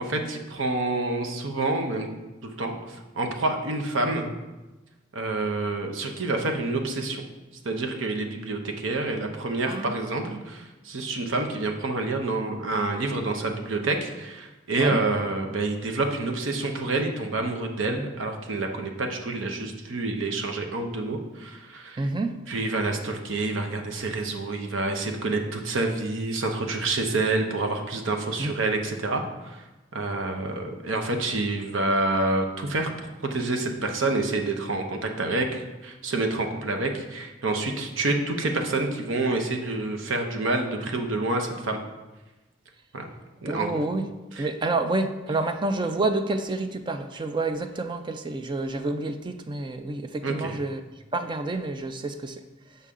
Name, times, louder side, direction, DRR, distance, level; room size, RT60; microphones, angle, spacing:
voice 1, 0.0-2.1 2.4-4.3 5.1-7.2 7.6-22.1 22.5-29.6 29.9-32.9 33.3-41.8 42.9-43.1 43.4-43.7 44.4-44.5 50.2-50.6, right 2 dB, 80° right, 3 dB, 0.8 m, -28 dB
voice 2, 9.7-10.4 14.8-15.0 22.0-22.4 28.4-28.6 43.4-44.1 44.4-50.8 51.1-52.4, right 2 dB, 25° right, 8 dB, 0.4 m, -29 dB
6.9 x 5.5 x 3.7 m, 1.1 s
head